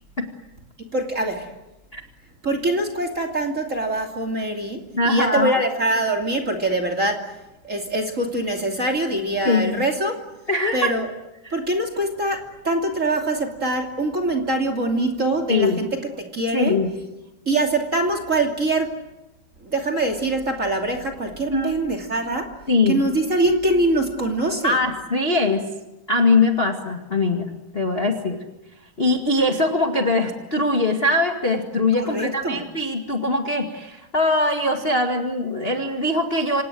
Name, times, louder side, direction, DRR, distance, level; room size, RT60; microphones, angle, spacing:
voice 1, 0.9-1.5 2.4-7.3 7.6-10.2 10.7-11.1 11.5-15.9 16.2-16.7 17.5-19.0 19.6-22.5 22.9-24.8 31.9-32.6, right 2 dB, 20° right, 5 dB, 2.6 m, -23 dB
voice 2, 4.9-5.6 9.4-9.7 10.5-10.9 11.4-11.5 15.5-15.8 16.5-16.9 21.5-21.8 22.7-23.0 24.6-25.6 26.1-28.4 29.0-36.6, left 2 dB, 25° left, 3 dB, 1.3 m, -21 dB
27.5 x 27.0 x 7.8 m, 0.97 s
omnidirectional pair, 4.5 m